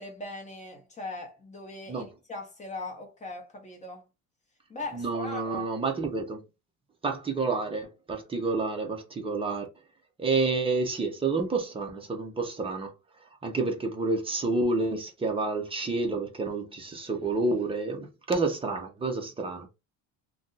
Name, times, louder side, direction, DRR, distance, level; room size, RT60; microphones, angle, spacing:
voice 1, 0.0-4.1 4.7-5.6, left 2 dB, 20° left, 0.8 m, -40 dB
voice 2, 4.9-6.4 7.0-9.7 10.2-12.9 13.4-19.7, right 3 dB, 15° right, 0.6 m, -29 dB
2.5 x 2.2 x 3.8 m
cardioid pair, 145°, 40 cm